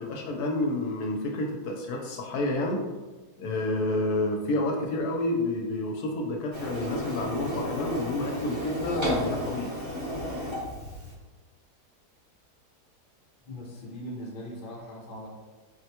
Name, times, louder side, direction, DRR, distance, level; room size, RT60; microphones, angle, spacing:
voice 1, 0.0-2.8 3.4-9.7, left 2 dB, 75° left, 0 dB, 1.1 m, -29 dB
Printer, 6.5-11.1, equal, 20° right, 0.8 m, -33 dB
voice 2, 13.4-15.3, equal, 45° left, -3 dB, 0.7 m, -40 dB
4.5 x 2.1 x 2.8 m, 1.2 s
omnidirectional pair, 1.7 m